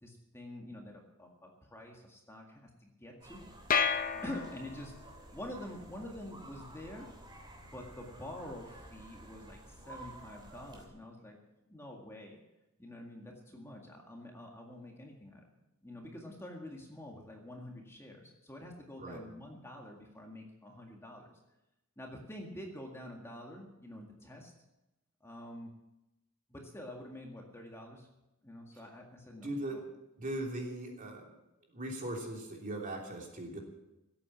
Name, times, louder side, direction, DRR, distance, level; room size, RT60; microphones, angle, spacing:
voice 1, 0.0-3.4 4.2-4.9 5.3-7.1 7.6-11.4 11.7-12.4 12.8-15.5 15.8-21.4 22.0-24.5 25.2-25.7 26.5-28.1 28.4-29.8, left 1 dB, 10° left, 0 dB, 1.9 m, -47 dB
sound 1, 3.2-10.9, right 1 dB, 20° right, 3.1 m, -52 dB
sound 2, 3.7-5.1, left 6 dB, 40° left, 0.8 m, -31 dB
voice 2, 29.4-29.8 30.2-31.2 31.7-33.6, right 1 dB, 40° right, 0 dB, 3.3 m, -39 dB
17.0 x 8.8 x 7.4 m, 0.94 s
head